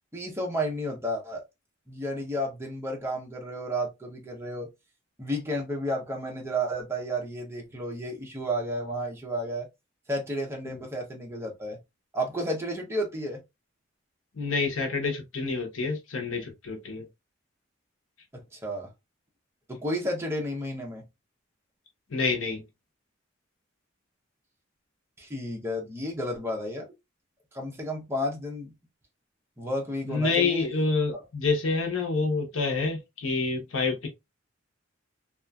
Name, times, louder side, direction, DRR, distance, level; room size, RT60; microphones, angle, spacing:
voice 1, 0.1-1.4 1.9-4.7 5.2-9.7 10.1-11.8 12.1-13.4 18.3-18.9 19.7-21.0 25.2-26.9 27.5-28.7 29.6-30.7, equal, 10° right, 0.7 m, -32 dB
voice 2, 14.3-17.1 22.1-22.6 30.0-34.1, left 4 dB, 75° left, 0.8 m, -28 dB
2.8 x 2.4 x 2.3 m
head